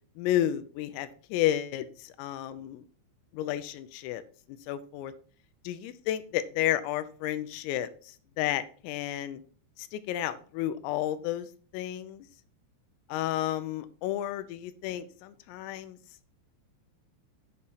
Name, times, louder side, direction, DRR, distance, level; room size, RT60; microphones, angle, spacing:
voice 1, 0.2-2.8 3.3-4.2 4.5-5.1 5.6-9.4 9.8-11.5 11.7-12.3 13.1-16.0, left 12 dB, 85° left, 12 dB, 3.4 m, -32 dB
8.5 x 7.6 x 4.0 m, 0.41 s
omnidirectional pair, 5.9 m